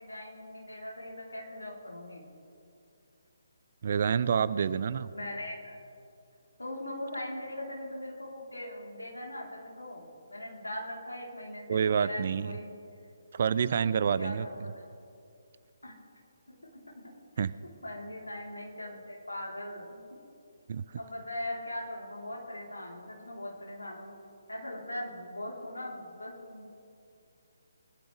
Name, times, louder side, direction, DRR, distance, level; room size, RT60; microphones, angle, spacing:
voice 1, 0.0-2.2 5.1-5.8 6.6-12.8 14.2-14.7 15.8-15.9 16.5-17.0 17.8-20.2 21.0-24.1 24.5-26.6, left 1 dB, 80° left, -3 dB, 3.8 m, -40 dB
voice 2, 3.8-5.1 11.7-12.6 13.3-14.5 17.4-17.5 20.7-20.8, right 7 dB, 45° right, 17 dB, 0.5 m, -27 dB
23.5 x 13.0 x 3.4 m, 2.6 s
figure-of-eight pair, 140°, 0 cm